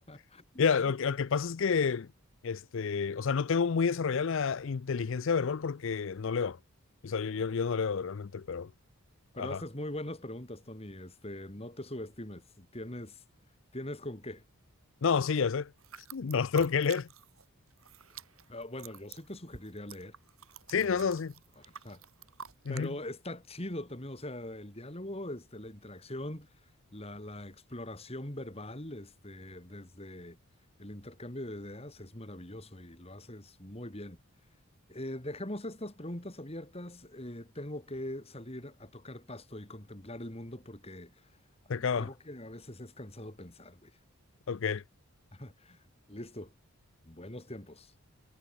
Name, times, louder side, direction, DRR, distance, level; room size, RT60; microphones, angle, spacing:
voice 1, 0.0-0.4 9.3-13.2 13.7-14.4 18.5-20.2 20.7-21.2 21.6-22.0 22.7-26.5 26.9-30.4 30.8-34.2 34.9-41.3 41.8-43.9 45.3-46.5 47.0-47.9, left 1 dB, 25° left, 2.9 m, -42 dB
voice 2, 0.6-2.1 2.4-6.6 7.0-8.7 9.4-9.6 15.0-15.7 16.1-17.1 20.7-21.3 22.7-22.9 41.7-42.1 44.5-44.8, left 5 dB, 60° left, 0.5 m, -29 dB
sound 1, 15.8-17.5 17.7-22.9, right 7 dB, 70° right, 5.0 m, -49 dB
head